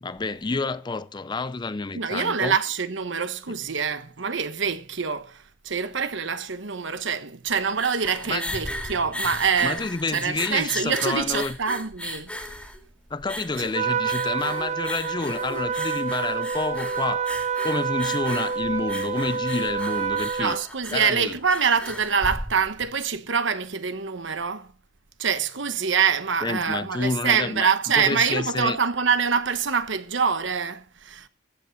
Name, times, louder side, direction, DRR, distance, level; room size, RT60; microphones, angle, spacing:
voice 1, 0.0-2.6 8.3-8.4 9.6-11.6 13.1-17.3 17.6-20.6 20.9-21.4 26.4-28.8, left 3 dB, 20° left, 0.5 m, -29 dB
voice 2, 1.9-12.3 13.6-13.7 20.4-24.7 25.2-31.3, right 6 dB, 65° right, 1.1 m, -25 dB
sound 1, 7.5-22.9, left 1 dB, 5° left, 2.2 m, -36 dB
Trumpet, 13.7-20.6, right 6 dB, 35° right, 0.6 m, -28 dB
15.0 x 8.3 x 5.3 m
head